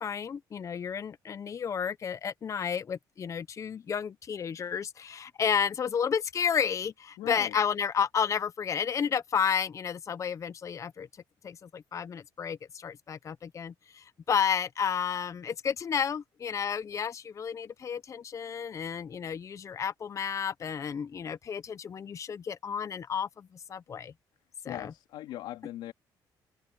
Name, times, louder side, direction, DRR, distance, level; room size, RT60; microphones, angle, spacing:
voice 1, 0.0-11.1 11.4-24.1 24.6-24.9, left 7 dB, 40° left, 0.7 m, -32 dB
voice 2, 7.2-7.6 24.7-25.9, left 14 dB, 90° left, 3.4 m, -39 dB
cardioid pair, 105°, 8 cm